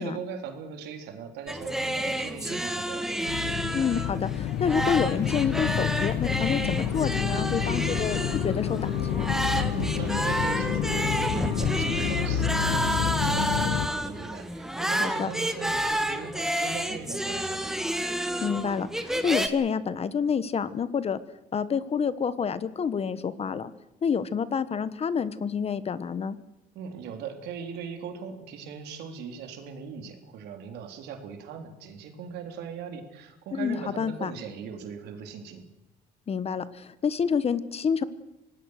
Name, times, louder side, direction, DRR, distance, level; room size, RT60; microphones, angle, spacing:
voice 1, 0.0-3.3 9.7-17.8 26.8-35.6, right 6 dB, 80° right, 5 dB, 3.8 m, -39 dB
sound 1, 1.5-19.5, right 1 dB, 5° right, 1.8 m, -30 dB
sound 2, 3.3-13.9, left 10 dB, 85° left, 1.5 m, -29 dB
voice 2, 3.7-9.3 15.0-15.3 18.4-21.2 21.5-23.7 24.0-26.4 33.5-34.3 36.3-38.0, left 6 dB, 35° left, 15 dB, 1.2 m, -28 dB
Wind instrument woodwind instrument, 7.5-13.1, right 4 dB, 30° right, 2.1 m, -41 dB
25.5 x 19.0 x 6.6 m, 0.94 s
cardioid pair, 110°, 17 cm